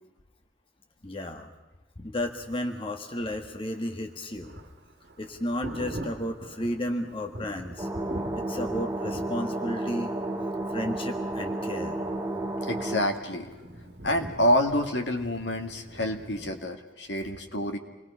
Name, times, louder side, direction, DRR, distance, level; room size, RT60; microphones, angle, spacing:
voice 1, 1.0-1.5 2.0-4.5 5.2-7.9 8.3-10.1 10.7-12.0, left 1 dB, 30° left, 4 dB, 1.6 m, -33 dB
Thunder, 3.7-16.5, right 1 dB, 60° right, 1.7 m, -43 dB
sound 1, 7.8-13.0, right 2 dB, 15° right, 3.2 m, -32 dB
voice 2, 12.7-13.5 14.0-17.8, left 1 dB, 75° left, 5 dB, 2.2 m, -27 dB
28.5 x 21.0 x 5.7 m, 1.1 s
head